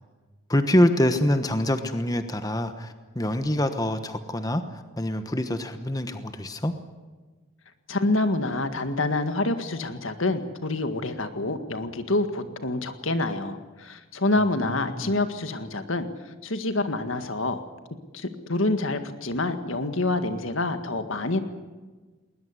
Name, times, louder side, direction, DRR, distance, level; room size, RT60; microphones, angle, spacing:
voice 1, 0.5-6.7 14.5-15.2, left 1 dB, 15° left, 8 dB, 1.1 m, -25 dB
voice 2, 7.9-17.6 18.1-21.4, left 2 dB, 70° left, 9 dB, 1.8 m, -27 dB
20.5 x 20.0 x 9.8 m, 1.3 s
head